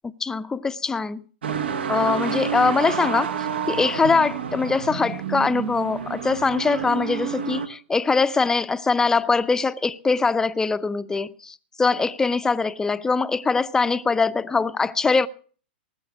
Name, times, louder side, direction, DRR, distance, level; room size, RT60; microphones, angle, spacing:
voice 1, 0.0-1.2 1.9-3.3 3.7-15.3, left 4 dB, 10° left, 0.6 m, -22 dB
sound 1, 1.4-7.7, right 7 dB, 80° right, 1.4 m, -29 dB
19.0 x 7.1 x 6.1 m
hypercardioid pair, 125°, 6 cm